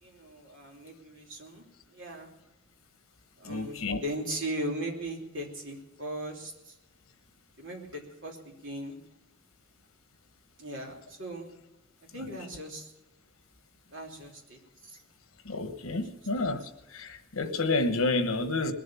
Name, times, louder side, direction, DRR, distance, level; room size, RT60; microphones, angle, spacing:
voice 1, 0.0-1.6 1.9-2.3 3.4-6.7 7.6-9.0 10.6-11.5 12.1-12.9 13.9-15.0 15.9-16.0, right 1 dB, 60° right, 3.1 m, -38 dB
voice 2, 3.4-4.0 15.4-16.6 16.9-18.7, left 3 dB, 70° left, 1.2 m, -29 dB
21.0 x 7.6 x 7.0 m
head